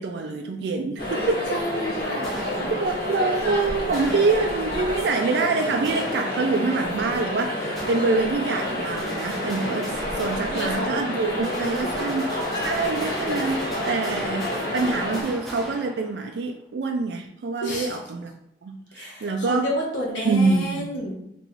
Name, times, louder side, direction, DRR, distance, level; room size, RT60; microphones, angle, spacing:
voice 1, 0.0-1.5 2.7-18.3 18.6-19.7 20.2-20.9, right 3 dB, 60° right, 3 dB, 0.3 m, -26 dB
sound 1, 1.0-15.2, left 1 dB, 50° left, 1.4 m, -29 dB
voice 2, 1.5-2.7 4.1-4.2 10.3-12.1 17.6-18.0 18.9-21.1, equal, 75° left, -3 dB, 1.1 m, -31 dB
sound 2, 2.2-3.2 3.9-4.9 5.8-6.8 7.8-8.7 9.0-16.5, equal, ahead, 0.8 m, -37 dB
3.7 x 3.0 x 3.1 m, 0.83 s
head